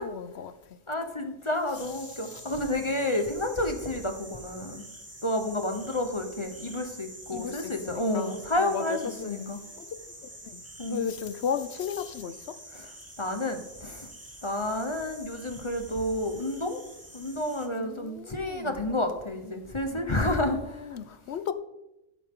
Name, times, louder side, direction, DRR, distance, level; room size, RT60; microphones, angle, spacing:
voice 1, 0.0-0.8 2.0-2.5 7.3-12.6 17.8-18.9 19.9-21.5, left 7 dB, 60° left, 0.9 m, -36 dB
voice 2, 0.9-4.8 5.2-9.0 9.2-9.6 10.8-11.1 13.2-14.1 14.4-16.8 17.1-21.0, left 1 dB, 25° left, 1.0 m, -30 dB
sound 1, 1.7-17.7, right 1 dB, 10° right, 1.6 m, -47 dB
15.5 x 8.3 x 3.8 m
omnidirectional pair, 1.4 m